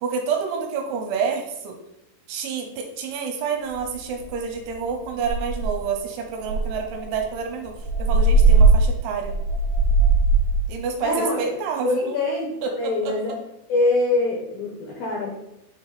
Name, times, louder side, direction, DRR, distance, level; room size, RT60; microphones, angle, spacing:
voice 1, 0.0-1.8 2.3-9.4 10.7-12.2 12.6-13.1, right 6 dB, 80° right, 4 dB, 3.0 m, -28 dB
sound 1, 3.7-3.8 4.2-4.5 4.8-4.9 5.2-5.9 6.4-10.6, right 3 dB, 20° left, 1.0 m, -19 dB
voice 2, 11.0-11.5 11.8-13.3 13.7-15.3, left 2 dB, 70° left, -2 dB, 2.3 m, -24 dB
8.8 x 4.6 x 4.1 m, 0.86 s
omnidirectional pair, 5.8 m